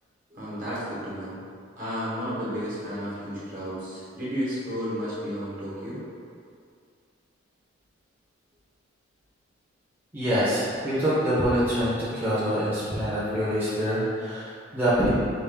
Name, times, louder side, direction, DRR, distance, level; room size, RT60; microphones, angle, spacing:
voice 1, 0.3-1.3 1.8-6.0, equal, 45° right, -9 dB, 1.4 m, -32 dB
voice 2, 10.1-15.1, equal, 10° right, -12 dB, 0.8 m, -25 dB
5.2 x 2.6 x 3.4 m, 2.3 s
head